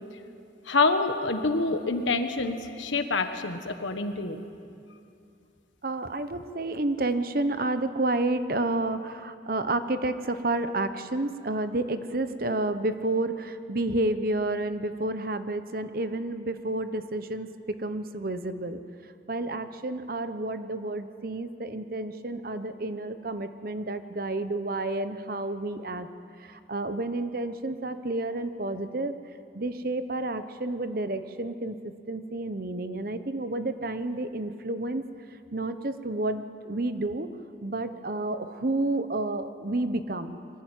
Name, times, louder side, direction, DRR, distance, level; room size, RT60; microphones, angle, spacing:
voice 1, 0.6-4.4, left 3 dB, 85° left, 7 dB, 1.4 m, -26 dB
voice 2, 5.8-18.8 19.3-26.1 26.4-29.1 29.5-31.8 32.1-35.0 35.5-37.3 37.6-40.4, right 2 dB, 50° right, 10 dB, 0.9 m, -30 dB
23.0 x 15.5 x 9.2 m, 2.6 s
head